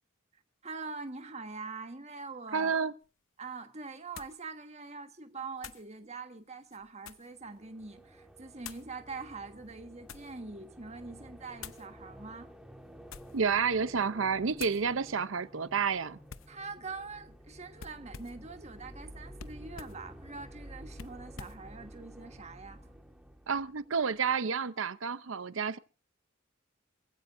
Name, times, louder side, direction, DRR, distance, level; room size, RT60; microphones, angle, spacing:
voice 1, 0.6-2.7 3.4-12.5 16.5-22.9, right 4 dB, 30° right, 1.4 m, -44 dB
voice 2, 2.5-2.9 13.3-16.2 23.5-25.8, right 5 dB, 70° right, 0.6 m, -30 dB
sound 1, 3.0-3.1 4.1-4.4 5.6-5.9 6.6-7.4 8.6-8.9 9.7-10.4 11.6-11.9 13.0-13.5 13.9-14.1 14.6-14.8 16.3-16.6 17.8-18.5 19.4-20.0 20.9-21.6, left 7 dB, 75° left, 0.6 m, -48 dB
sound 2, 7.2-24.3, equal, 5° right, 1.6 m, -51 dB
26.0 x 15.5 x 2.6 m
head